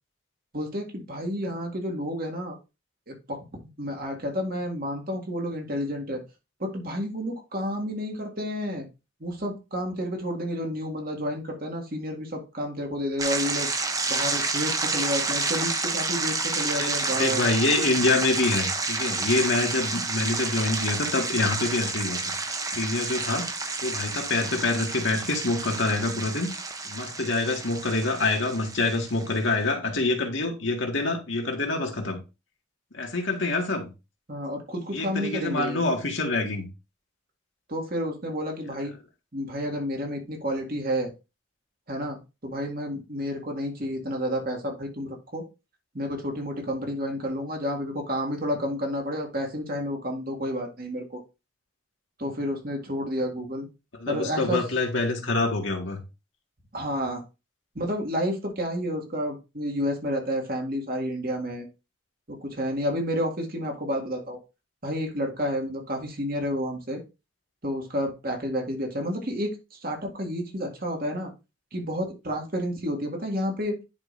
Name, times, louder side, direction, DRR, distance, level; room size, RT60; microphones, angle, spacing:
voice 1, 0.5-2.6 3.1-6.2 6.6-8.9 9.2-13.7 14.1-17.5 34.3-35.8 37.7-38.9 39.3-41.1 41.9-45.4 45.9-51.2 52.2-53.7 54.1-54.6 56.7-57.2 57.8-61.7 62.3-64.4 64.8-67.0 67.6-71.3 71.7-73.8, equal, 45° right, 2.0 m, -30 dB
sound 1, 13.2-29.4, right 3 dB, 15° right, 0.7 m, -30 dB
voice 2, 16.8-22.3 22.8-23.5 23.8-26.5 26.8-32.2 32.9-33.9 34.9-36.7 53.9-56.0, left 2 dB, 70° left, 1.9 m, -26 dB
10.5 x 4.9 x 2.6 m
head